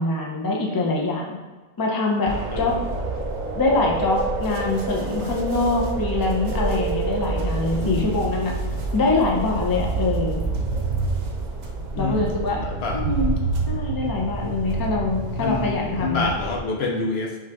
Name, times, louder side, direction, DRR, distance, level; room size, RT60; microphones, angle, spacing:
voice 1, 0.0-1.4 1.8-2.7 3.5-8.6 8.9-10.4 12.0-12.6 12.9-13.3 13.7-16.3, left 3 dB, 25° left, -1 dB, 0.5 m, -24 dB
sound 1, 2.2-16.6, right 3 dB, 50° right, 0.6 m, -27 dB
voice 2, 2.5-2.8 7.7-8.1 11.9-13.0 15.4-17.4, left 3 dB, 70° left, 1 dB, 0.9 m, -28 dB
5.5 x 2.5 x 3.4 m, 1.3 s
omnidirectional pair, 1.1 m